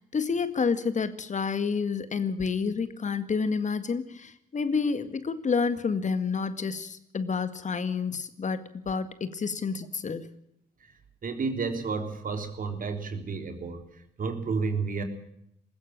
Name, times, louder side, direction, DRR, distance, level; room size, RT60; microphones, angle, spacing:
voice 1, 0.0-10.3, left 5 dB, 40° left, 12 dB, 1.9 m, -29 dB
voice 2, 11.2-15.0, right 4 dB, 50° right, 7 dB, 3.7 m, -31 dB
20.5 x 15.5 x 8.8 m, 0.75 s
hypercardioid pair, 45°, 18 cm